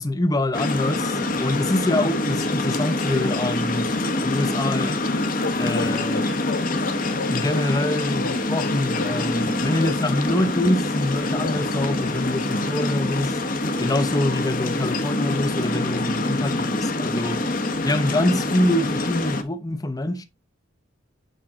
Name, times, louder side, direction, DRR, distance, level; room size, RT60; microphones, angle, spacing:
voice 1, 0.0-3.9 4.2-5.0 5.6-6.2 7.3-13.4 13.8-17.5 17.8-20.2, left 1 dB, 20° left, 0.7 m, -25 dB
sound 1, 0.5-19.4, left 2 dB, 45° left, 1.0 m, -25 dB
sound 2, 5.0-12.8, left 4 dB, 75° left, 0.7 m, -36 dB
9.0 x 3.7 x 3.7 m
head